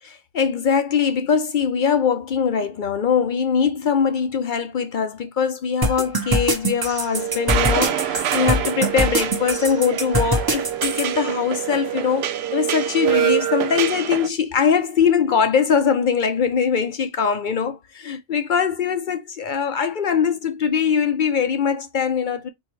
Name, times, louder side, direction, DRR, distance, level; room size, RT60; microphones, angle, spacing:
voice 1, 0.0-22.5, left 7 dB, 55° left, 0.6 m, -22 dB
sound 1, 5.8-11.1, right 1 dB, 25° right, 0.6 m, -23 dB
sound 2, 7.1-14.3, right 10 dB, 70° right, 0.8 m, -25 dB
4.6 x 3.5 x 3.0 m
omnidirectional pair, 1.2 m